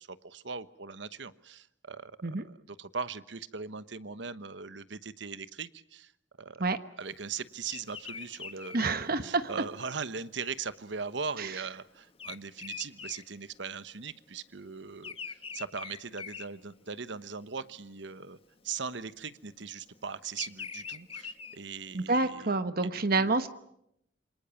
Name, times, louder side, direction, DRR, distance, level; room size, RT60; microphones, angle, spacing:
voice 1, 0.0-6.1 6.4-6.7 7.0-18.4 18.6-22.5 22.8-23.3, right 5 dB, 70° right, 14 dB, 1.1 m, -40 dB
Bird vocalization bird call bird song, 7.7-14.1 14.3-17.2 17.7-18.1 19.0-22.0, left 6 dB, 30° left, 1.7 m, -44 dB
voice 2, 8.7-9.5 11.4-11.5 21.9-23.5, right 3 dB, 55° right, 10 dB, 1.2 m, -28 dB
27.5 x 25.0 x 7.1 m, 0.76 s
head